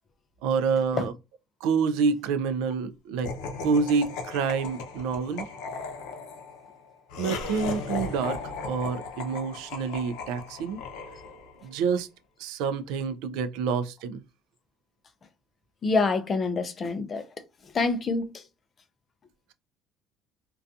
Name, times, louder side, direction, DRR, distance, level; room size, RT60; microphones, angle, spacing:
voice 1, 0.4-1.1 1.6-3.3 3.6-5.5 7.2-10.8 11.6-12.1 12.4-14.2, right 5 dB, 85° right, 0.3 m, -27 dB
Laughter, 3.2-11.6, left 4 dB, 80° left, 0.6 m, -36 dB
voice 2, 15.8-17.2 17.7-18.4, left 3 dB, 25° left, 0.4 m, -26 dB
2.6 x 2.2 x 2.4 m
cardioid pair, 170°, 0 cm